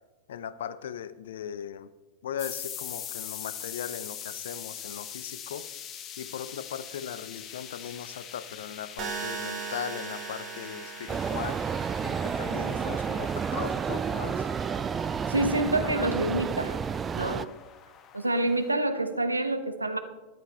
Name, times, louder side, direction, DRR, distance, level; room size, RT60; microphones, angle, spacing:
voice 1, 0.3-1.9 2.2-5.7 6.2-11.6 12.0-14.5, left 9 dB, 60° left, 16 dB, 0.5 m, -38 dB
sound 1, 2.4-18.7, left 9 dB, 30° left, 1.0 m, -43 dB
sound 2, 9.0-13.0, right 5 dB, 35° right, 2.0 m, -39 dB
sound 3, 11.1-17.5, right 6 dB, 20° right, 0.3 m, -30 dB
voice 2, 15.3-16.8 17.1-17.5 18.1-20.0, right 1 dB, 85° right, 9 dB, 0.9 m, -27 dB
13.5 x 10.5 x 3.3 m, 1.2 s
figure-of-eight pair, 90°, 0 cm